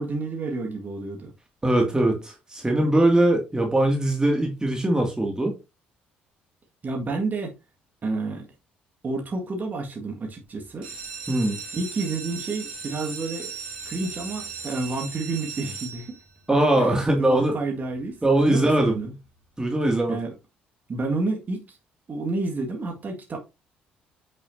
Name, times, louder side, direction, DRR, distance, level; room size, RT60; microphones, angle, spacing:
voice 1, 0.0-1.3 6.8-7.5 8.0-8.5 9.0-10.9 11.7-13.5 13.9-16.2 16.8-19.1 20.1-20.3 20.9-21.8 22.1-23.4, right 3 dB, 35° right, 1.9 m, -30 dB
voice 2, 1.6-5.5 11.3-11.6 16.5-17.5 18.2-19.0 19.6-20.2, right 1 dB, 15° right, 2.3 m, -21 dB
sound 1, 10.7-16.4 17.1-17.5 17.9-18.0 18.3-18.4 18.8-18.9, right 5 dB, 80° right, 3.0 m, -37 dB
8.3 x 6.3 x 2.7 m
figure-of-eight pair, 50°, 5 cm